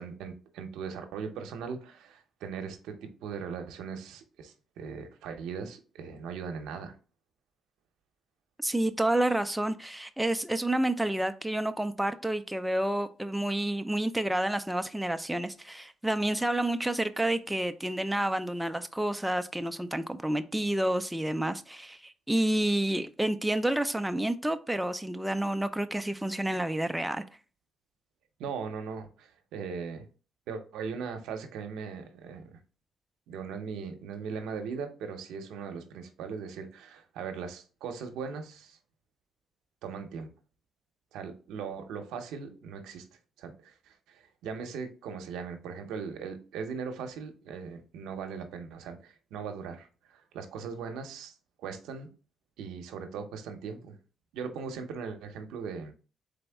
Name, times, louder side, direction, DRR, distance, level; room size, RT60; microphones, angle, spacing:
voice 1, 0.0-6.9 28.4-30.0 30.5-32.6 33.3-38.8 39.8-40.3 41.1-43.0 43.4-51.3 51.6-52.1 52.6-54.0 54.3-55.9, right 6 dB, 90° right, 0.7 m, -39 dB
voice 2, 8.6-27.2, right 1 dB, 5° right, 0.4 m, -29 dB
4.0 x 3.4 x 3.4 m
cardioid pair, 90°, 0 cm